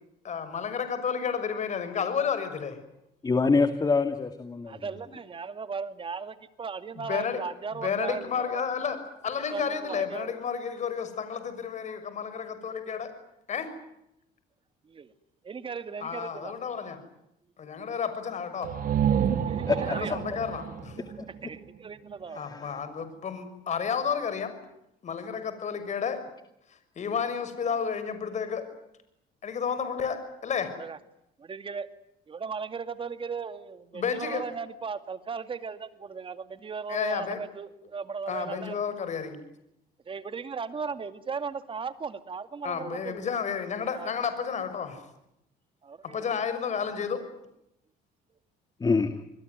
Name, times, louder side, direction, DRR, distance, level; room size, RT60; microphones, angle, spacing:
voice 1, 0.2-2.8 7.0-7.4 7.7-9.0 9.2-13.1 13.5-13.7 16.0-17.0 17.6-18.7 19.8-21.0 22.3-24.5 25.0-26.2 27.0-28.6 29.4-30.7 33.9-34.4 36.9-37.4 38.3-39.4 42.6-45.0 46.0-47.2, left 6 dB, 45° left, 10 dB, 6.3 m, -31 dB
voice 2, 3.2-4.8 19.7-19.8 22.5-22.7 48.8-49.1, left 4 dB, 25° left, 9 dB, 2.2 m, -24 dB
voice 3, 4.7-8.6 9.5-10.4 14.8-15.1 15.4-16.5 19.4-20.2 21.4-22.4 30.8-31.0 31.4-31.9 32.3-38.8 40.1-43.3 43.9-44.1 45.8-46.3, right 5 dB, 30° right, 11 dB, 2.3 m, -37 dB
sound 1, 18.6-22.3, right 9 dB, 55° right, 1.9 m, -29 dB
27.5 x 21.5 x 9.5 m, 0.82 s
cardioid pair, 110°, 17 cm